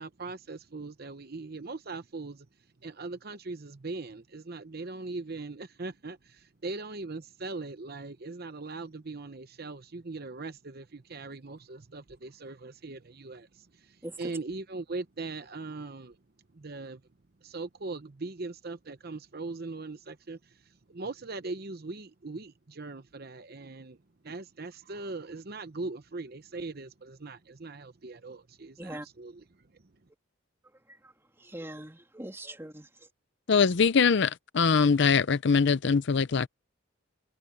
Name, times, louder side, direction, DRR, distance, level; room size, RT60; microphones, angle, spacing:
voice 1, 0.0-2.5 2.8-16.2 16.5-17.0 17.4-20.4 20.9-24.0 24.2-29.4, right 3 dB, 50° right, 0.9 m, -40 dB
voice 2, 31.4-32.9, right 1 dB, 10° right, 2.8 m, -41 dB
voice 3, 33.5-36.5, left 5 dB, 60° left, 0.6 m, -23 dB
head